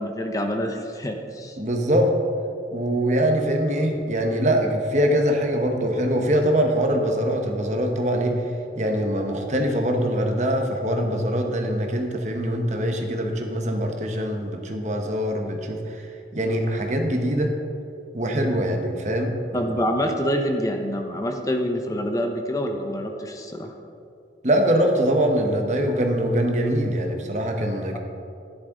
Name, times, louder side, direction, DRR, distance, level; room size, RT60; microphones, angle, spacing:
voice 1, 0.0-1.6 19.5-23.7, equal, 20° left, 4 dB, 0.7 m, -26 dB
voice 2, 1.6-2.1 2.7-8.4 8.7-17.5 18.1-19.7 24.4-28.0, equal, 40° right, 3 dB, 1.2 m, -23 dB
12.5 x 11.0 x 3.8 m, 2.5 s
head